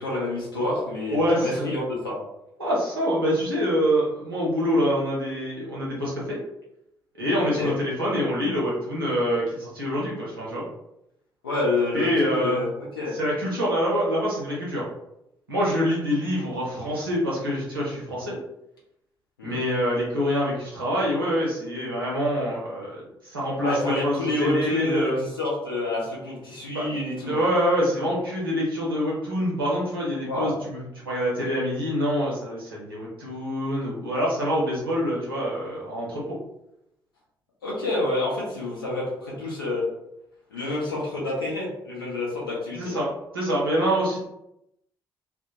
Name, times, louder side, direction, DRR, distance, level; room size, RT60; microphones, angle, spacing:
voice 1, 0.0-2.2 7.6-7.7 11.4-12.7 13.0-13.2 19.4-19.6 23.6-27.3 30.2-30.5 37.6-39.9 40.5-43.0, left 2 dB, 85° left, -4 dB, 0.6 m, -28 dB
voice 2, 1.1-1.7 2.6-6.4 7.2-10.6 11.9-12.6 13.1-14.8 15.5-18.4 19.4-25.2 26.7-26.9 27.3-30.8 31.0-36.4 42.7-44.2, equal, 90° right, -6 dB, 0.6 m, -25 dB
2.1 x 2.1 x 2.8 m, 0.84 s
figure-of-eight pair, 45°, 12 cm